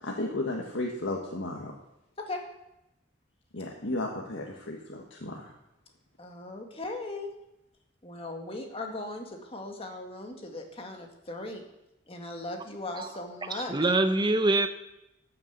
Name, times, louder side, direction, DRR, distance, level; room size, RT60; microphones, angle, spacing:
voice 1, 0.0-1.7 3.5-5.5, left 2 dB, 90° left, -1 dB, 1.6 m, -34 dB
voice 2, 6.2-7.3 8.0-11.6 12.1-13.8, left 2 dB, 30° left, 3 dB, 1.9 m, -38 dB
voice 3, 13.5-14.7, right 2 dB, 25° right, 8 dB, 0.8 m, -24 dB
13.0 x 7.0 x 8.1 m, 0.87 s
head